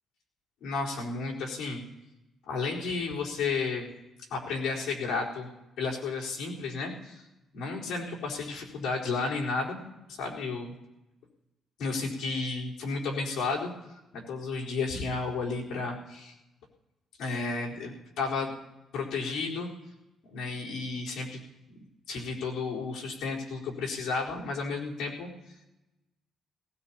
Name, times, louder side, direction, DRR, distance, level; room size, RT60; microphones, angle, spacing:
voice 1, 0.6-1.8 2.5-3.9 4.3-5.5 5.8-7.2 7.5-9.8 10.2-10.7 11.8-13.7 14.1-16.3 17.2-18.5 18.9-19.7 20.3-21.4 21.7-21.8 22.1-25.3, left 4 dB, 80° left, -5 dB, 4.2 m, -32 dB
19.5 x 19.0 x 2.9 m, 0.98 s
cardioid pair, 90°, 0 cm